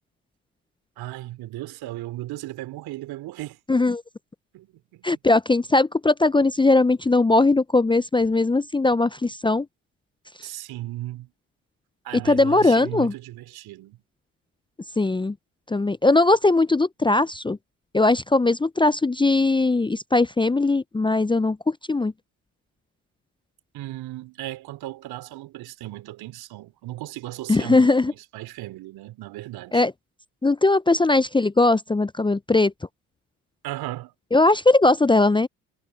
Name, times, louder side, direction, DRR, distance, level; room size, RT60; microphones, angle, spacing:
voice 1, 1.0-3.6 4.5-5.0 10.4-11.3 12.0-14.0 23.7-29.8 33.6-34.1, right 16 dB, 60° right, 3.7 m, -36 dB
voice 2, 3.7-4.0 5.0-9.7 12.2-13.1 15.0-15.3 15.7-17.6 17.9-22.1 27.5-28.1 29.7-29.9 30.4-32.7 34.3-35.5, left 2 dB, 10° left, 0.8 m, -19 dB
figure-of-eight pair, 50°, 41 cm